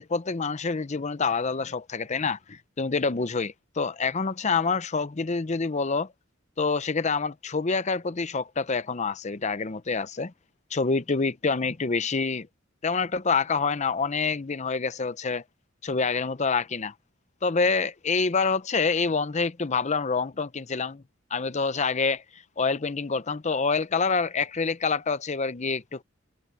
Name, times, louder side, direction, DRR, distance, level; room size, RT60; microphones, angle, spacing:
voice 1, 0.0-6.1 6.6-10.3 10.7-12.5 12.8-15.4 15.8-16.9 17.4-21.0 21.3-22.2 22.6-26.0, left 4 dB, 35° left, 0.7 m, -27 dB
head